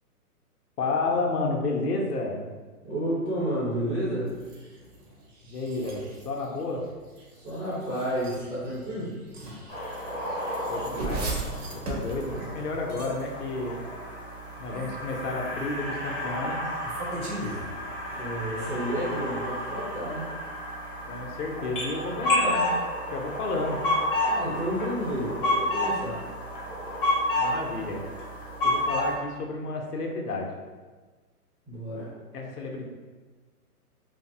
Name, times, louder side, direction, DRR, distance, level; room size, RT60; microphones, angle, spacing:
voice 1, 0.8-2.5 5.4-6.8 10.7-13.8 14.6-16.6 21.1-22.7 23.1-23.8 27.4-28.0 28.6-30.5 32.3-32.9, left 3 dB, 85° left, 1 dB, 0.7 m, -31 dB
voice 2, 2.8-4.3 7.3-9.2 18.1-20.2 24.2-26.2 31.7-32.2, equal, 5° right, -14 dB, 0.9 m, -31 dB
sound 1, 4.3-13.4 14.5-15.7 16.7-18.4, right 2 dB, 75° right, 0.9 m, -39 dB
sound 2, 9.7-29.1, left 1 dB, 35° left, 0.5 m, -31 dB
3.1 x 2.0 x 2.7 m, 1.3 s
hypercardioid pair, 160°, 46 cm